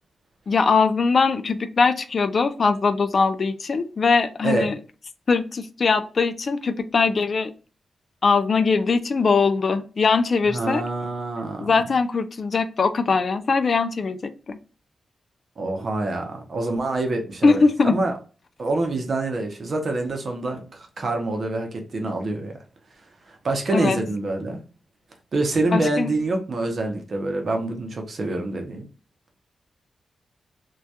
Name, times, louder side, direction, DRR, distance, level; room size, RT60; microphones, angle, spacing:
voice 1, 0.5-4.8 5.3-7.5 8.2-10.8 11.6-14.6 17.4-18.0 23.7-24.0 25.7-26.1, left 4 dB, 50° left, 0.3 m, -21 dB
voice 2, 4.4-4.7 10.5-11.7 15.6-17.6 17.9-18.1 18.6-22.5 23.3-24.6 25.3-28.9, right 2 dB, 50° right, 0.6 m, -26 dB
2.2 x 2.2 x 2.7 m
wide cardioid pair, 110°, 0 cm